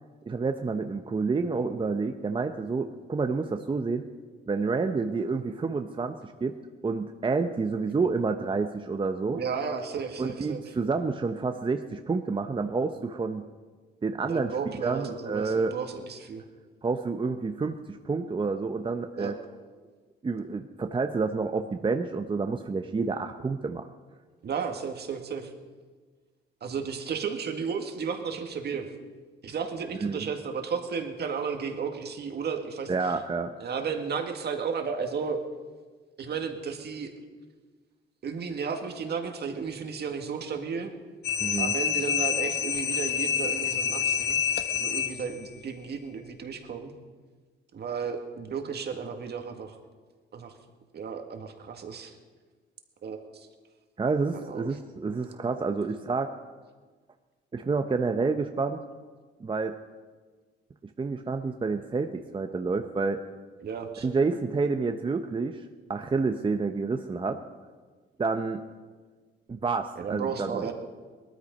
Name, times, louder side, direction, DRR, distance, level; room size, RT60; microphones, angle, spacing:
voice 1, 0.3-4.0 4.5-6.6 6.8-9.4 10.2-13.4 14.0-14.5 14.8-15.7 16.8-19.3 20.2-23.9 30.0-30.2 32.9-33.5 41.4-41.7 54.0-56.3 57.5-58.8 59.4-59.7 61.0-63.2 64.0-65.6 65.9-67.4 68.2-68.6 69.5-70.7, right 4 dB, 25° right, 6 dB, 0.8 m, -29 dB
voice 2, 9.3-10.6 14.2-16.4 19.2-19.4 24.4-25.5 26.6-28.9 29.4-32.9 33.6-35.4 36.2-37.1 38.2-40.9 41.6-44.4 44.7-46.9 47.7-49.8 50.3-50.5 50.9-52.1 53.0-53.5 54.3-54.7 63.6-64.1 70.0-70.7, right 6 dB, 55° right, 5 dB, 2.0 m, -33 dB
sound 1, 41.2-45.5, left 8 dB, 55° left, 1.2 m, -28 dB
19.0 x 13.0 x 5.4 m, 1.4 s
cardioid pair, 90°, 20 cm